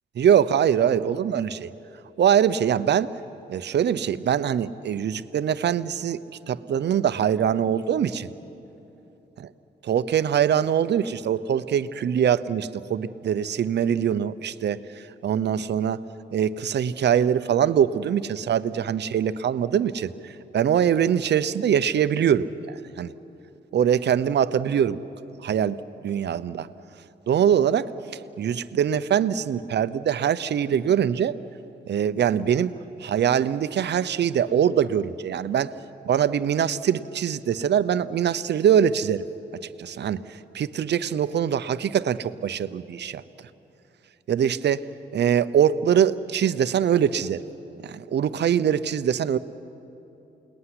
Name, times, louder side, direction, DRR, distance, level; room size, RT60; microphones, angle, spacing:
voice 1, 0.2-1.7 2.2-3.1 3.5-6.2 6.5-8.3 9.8-16.0 16.3-23.1 23.7-25.0 25.4-25.8 26.0-26.7 27.3-31.4 31.9-32.7 33.0-35.7 36.0-39.3 39.8-43.2 44.3-44.9 45.1-47.4 47.8-49.4, right 9 dB, 70° right, 13 dB, 0.8 m, -23 dB
28.5 x 20.0 x 9.9 m, 3.0 s
cardioid pair, 85°, 18 cm